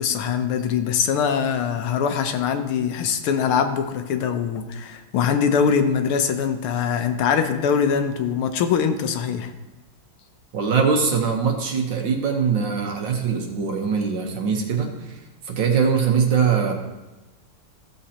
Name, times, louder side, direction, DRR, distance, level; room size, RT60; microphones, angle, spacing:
voice 1, 0.0-9.5, left 7 dB, 80° left, 7 dB, 1.6 m, -22 dB
voice 2, 10.5-16.7, right 6 dB, 60° right, 2 dB, 1.7 m, -22 dB
14.5 x 7.0 x 2.8 m, 1.1 s
omnidirectional pair, 2.4 m